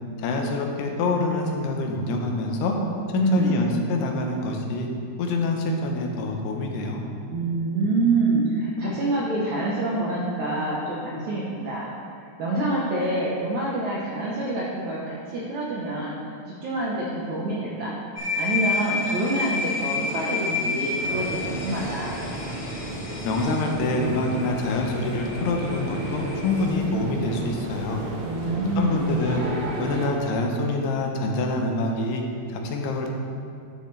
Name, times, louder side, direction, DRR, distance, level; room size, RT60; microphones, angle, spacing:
voice 1, 0.2-2.8 3.1-4.9 5.2-7.0 23.2-28.0 28.8-29.4 29.8-32.2 32.5-33.1, left 2 dB, 80° left, 1 dB, 2.9 m, -26 dB
voice 2, 3.1-3.6 7.3-11.9 12.4-16.1 16.5-17.9 18.4-22.2 28.2-29.1, right 2 dB, 75° right, -6 dB, 1.7 m, -26 dB
sound 1, 18.2-26.6, left 4 dB, 55° left, 1.9 m, -31 dB
sound 2, 21.0-30.1, right 1 dB, 60° right, 2.6 m, -33 dB
12.0 x 6.8 x 3.3 m, 2.6 s
omnidirectional pair, 4.7 m